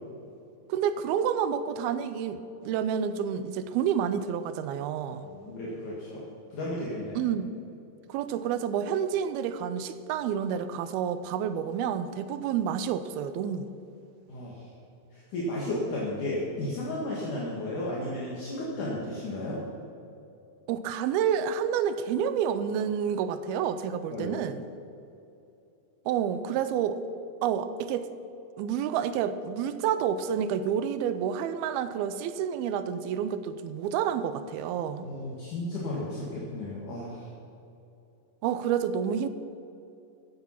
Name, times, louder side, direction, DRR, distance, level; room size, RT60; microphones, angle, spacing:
voice 1, 0.7-5.3 7.2-7.5 8.1-13.7 20.7-24.6 26.1-27.0 27.4-28.1 28.6-35.1 38.4-39.3, right 8 dB, 85° right, 12 dB, 2.6 m, -29 dB
voice 2, 5.1-6.2 6.5-7.2 14.3-14.7 15.1-19.6 24.1-24.3 35.0-37.3, left 1 dB, 60° left, -5 dB, 3.1 m, -34 dB
15.5 x 9.7 x 5.7 m, 2.8 s
omnidirectional pair, 4.3 m